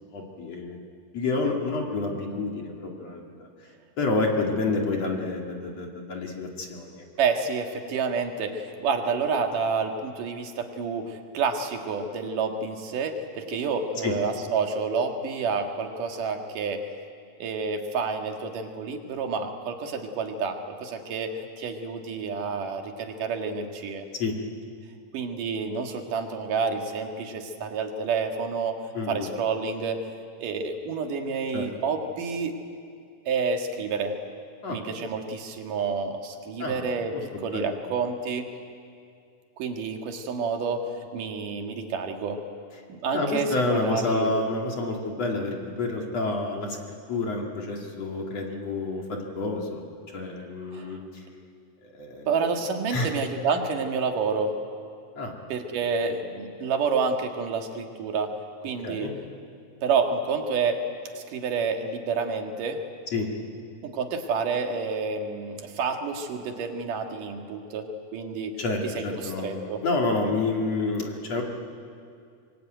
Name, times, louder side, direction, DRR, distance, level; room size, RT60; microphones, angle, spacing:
voice 1, 0.1-0.8 1.1-3.5 4.0-7.0 14.0-14.2 24.2-24.4 28.9-29.3 31.5-31.6 34.6-34.8 36.6-36.9 37.3-37.7 43.1-49.8 50.1-51.2 51.8-52.3 52.9-53.2 55.2-55.3 58.8-59.1 63.1-63.3 68.6-71.4, left 3 dB, 45° left, 1 dB, 3.1 m, -29 dB
voice 2, 7.2-16.9 17.4-21.3 21.6-24.1 25.1-28.8 29.1-30.0 30.4-32.5 33.3-34.1 34.7-38.5 39.6-42.4 42.9-44.3 50.7-50.9 52.3-54.6 55.5-59.1 59.8-60.8 61.1-62.8 63.8-68.5 69.0-69.8, right 5 dB, 60° right, 4 dB, 3.2 m, -29 dB
25.0 x 23.5 x 9.2 m, 2.3 s
omnidirectional pair, 4.5 m